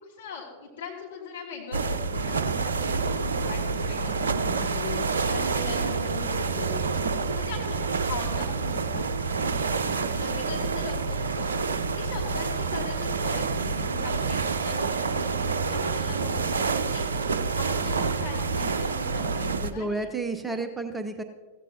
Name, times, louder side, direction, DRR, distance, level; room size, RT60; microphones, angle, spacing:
voice 1, 0.0-5.0 5.3-6.8 7.2-17.1 17.6-20.0 20.5-20.6, left 4 dB, 65° left, -1 dB, 2.6 m, -39 dB
sound 1, 1.7-19.7, right 4 dB, 70° right, 0.5 m, -28 dB
voice 2, 19.6-21.2, right 3 dB, 10° right, 8 dB, 0.7 m, -31 dB
15.5 x 14.5 x 2.8 m, 1.5 s
figure-of-eight pair, 90°, 0 cm